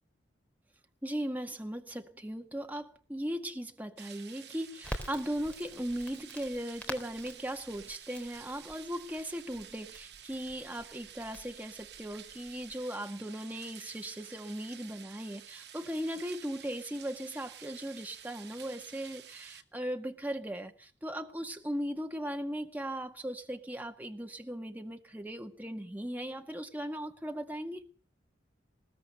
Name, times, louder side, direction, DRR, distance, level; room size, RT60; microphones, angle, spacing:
voice 1, 1.0-27.9, equal, 10° right, 1.9 m, -38 dB
sound 1, 4.0-19.6, right 10 dB, 65° right, 2.2 m, -51 dB
Crackle, 4.8-12.7, equal, 10° left, 3.8 m, -47 dB
21.0 x 18.0 x 6.8 m
head